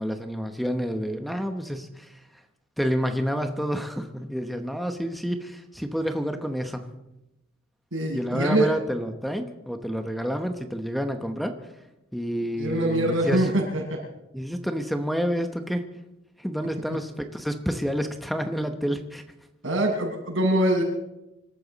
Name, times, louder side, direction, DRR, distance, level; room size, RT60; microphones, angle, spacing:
voice 1, 0.0-2.2 2.8-6.9 8.1-11.6 12.1-13.5 14.3-15.9 16.4-19.2, equal, ahead, 6 dB, 0.9 m, -29 dB
voice 2, 7.9-8.7 12.6-14.0 19.6-20.8, right 1 dB, 85° right, -1 dB, 7.0 m, -23 dB
26.0 x 13.5 x 4.1 m, 0.93 s
head